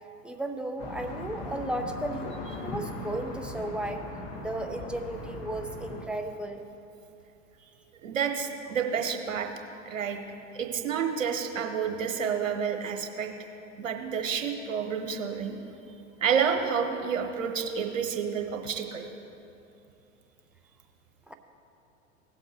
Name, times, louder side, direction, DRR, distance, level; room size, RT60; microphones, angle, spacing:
voice 1, 0.2-2.3 2.6-4.0 4.4-6.6 21.3-21.4, right 1 dB, 5° right, 4 dB, 0.7 m, -34 dB
sound 1, 0.8-6.0, left 2 dB, 50° left, 1.6 m, -39 dB
voice 2, 8.0-9.5 9.9-10.2 10.5-13.3 13.8-15.6 16.2-19.1, right 7 dB, 75° right, 4 dB, 1.2 m, -29 dB
17.0 x 7.8 x 3.1 m, 2.8 s
figure-of-eight pair, 90°, 39 cm